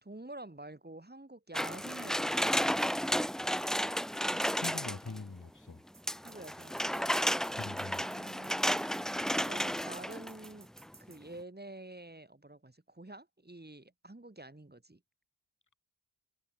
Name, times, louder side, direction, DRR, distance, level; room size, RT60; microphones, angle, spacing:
voice 1, 0.0-2.5 6.2-7.1 7.8-10.7 11.0-15.0, right 2 dB, 20° right, 4.5 m, -49 dB
sound 1, 1.5-5.2 6.1-10.5 10.8-10.9, equal, ahead, 0.6 m, -32 dB
voice 2, 4.3-5.8 7.6-8.0, left 3 dB, 40° left, 3.9 m, -43 dB
sound 2, 5.9-11.2, right 4 dB, 45° right, 3.5 m, -57 dB
wide cardioid pair, 75°, 45 cm